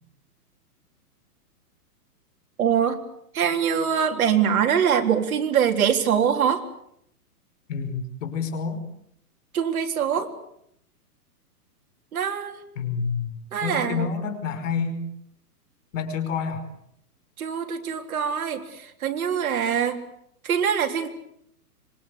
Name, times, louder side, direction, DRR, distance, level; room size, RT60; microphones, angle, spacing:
voice 1, 2.6-3.0 3.3-6.6 9.5-10.3 12.1-12.6 13.5-14.1 17.4-20.0 20.4-21.1, right 8 dB, 60° right, 4 dB, 3.9 m, -23 dB
voice 2, 7.7-8.9 12.8-15.0 15.9-16.7, left 6 dB, 50° left, 9 dB, 5.5 m, -28 dB
26.0 x 23.5 x 8.4 m, 0.73 s
hypercardioid pair, 160°, 47 cm